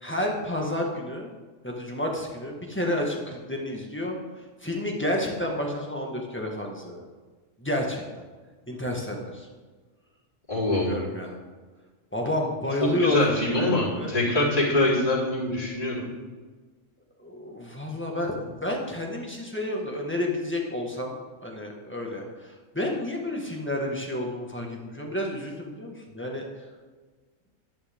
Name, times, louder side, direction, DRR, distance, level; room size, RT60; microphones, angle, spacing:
voice 1, 0.0-1.3 1.6-4.2 4.6-7.0 7.6-8.2 8.7-9.5 10.7-11.4 12.1-14.1 17.2-21.1 21.4-26.4, left 1 dB, 10° left, -1 dB, 1.6 m, -30 dB
voice 2, 10.5-11.0 13.0-16.1, left 2 dB, 25° left, -9 dB, 4.2 m, -24 dB
12.0 x 11.0 x 3.7 m, 1.4 s
omnidirectional pair, 1.4 m